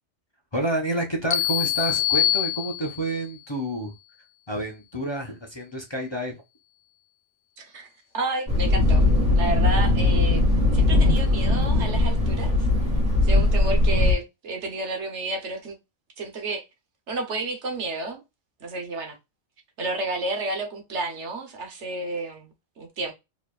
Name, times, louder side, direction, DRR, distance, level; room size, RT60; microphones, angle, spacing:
voice 1, 0.5-3.9 4.5-6.4, right 1 dB, 25° left, 0.9 m, -29 dB
sound 1, 1.3-3.2, left 12 dB, 55° left, 0.5 m, -24 dB
voice 2, 7.6-7.9 8.1-9.0 9.3-10.4 10.7-12.5 13.2-15.8 16.2-16.6 17.1-18.2 18.6-19.2 19.8-23.1, right 2 dB, 70° right, 1.3 m, -31 dB
Thunder, 8.5-14.1, left 2 dB, 5° right, 2.2 m, -20 dB
4.8 x 3.2 x 2.4 m
omnidirectional pair, 1.3 m